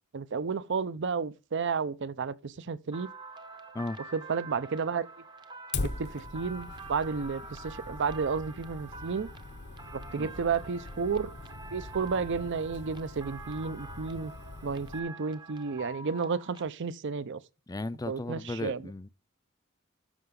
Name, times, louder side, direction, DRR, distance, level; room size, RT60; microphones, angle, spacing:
voice 1, 0.1-3.1 4.1-5.1 5.8-9.3 9.9-11.3 11.7-14.3 14.6-17.4 18.1-18.8, right 5 dB, 55° right, 0.5 m, -32 dB
sound 1, 2.9-16.6, right 3 dB, 20° right, 0.7 m, -46 dB
Fire, 5.7-15.0, left 3 dB, 55° left, 0.7 m, -42 dB
voice 2, 17.7-19.1, left 2 dB, 15° left, 0.4 m, -35 dB
13.5 x 5.7 x 3.7 m
head